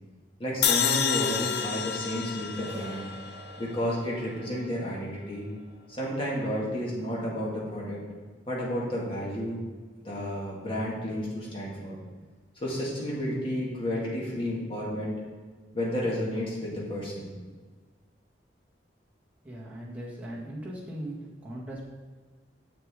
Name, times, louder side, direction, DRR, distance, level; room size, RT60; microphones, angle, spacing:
voice 1, 0.4-3.0 3.6-5.5 5.9-8.0 8.5-9.6 10.0-12.0 12.6-15.2 15.7-17.3, equal, 30° left, -5 dB, 2.1 m, -31 dB
sound 1, 0.6-3.8, left 8 dB, 65° left, 0.5 m, -29 dB
sound 2, 2.6-8.1, equal, 35° right, 1.1 m, -50 dB
voice 2, 19.4-21.1 21.4-21.8, right 1 dB, 10° right, -6 dB, 1.7 m, -38 dB
7.1 x 7.0 x 3.7 m, 1.5 s
head